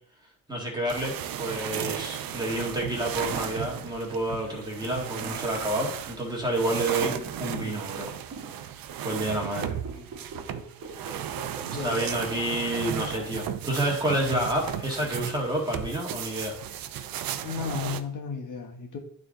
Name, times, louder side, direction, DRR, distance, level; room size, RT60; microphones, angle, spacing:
voice 1, 0.5-7.1 7.4-8.1 9.0-9.7 11.7-16.6, right 1 dB, 10° right, -2 dB, 1.8 m, -29 dB
sound 1, 0.9-18.0, right 10 dB, 80° right, 0.6 m, -35 dB
sound 2, 2.9-15.3, right 3 dB, 40° right, 1.5 m, -44 dB
voice 2, 11.6-12.0 17.4-19.0, left 6 dB, 60° left, 2 dB, 1.4 m, -34 dB
11.5 x 3.9 x 3.8 m, 0.66 s
wide cardioid pair, 175°, 34 cm